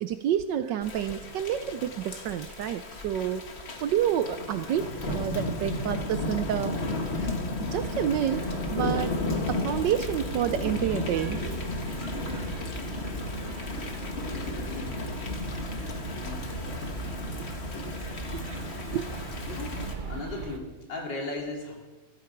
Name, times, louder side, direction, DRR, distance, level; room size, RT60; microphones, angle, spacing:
voice 1, 0.0-3.5 3.8-6.7 7.1-7.3 7.7-9.2 9.5-11.4 18.3-19.1, right 10 dB, 70° right, 10 dB, 1.1 m, -29 dB
Thunder / Rain, 0.8-19.9, left 2 dB, 35° left, 1.4 m, -33 dB
sound 1, 7.7-20.6, right 4 dB, 85° right, 0.4 m, -41 dB
voice 2, 14.3-15.1 16.1-16.5 19.5-21.7, left 2 dB, 60° left, 0 dB, 3.3 m, -38 dB
15.0 x 13.5 x 4.6 m, 1.2 s
omnidirectional pair, 2.3 m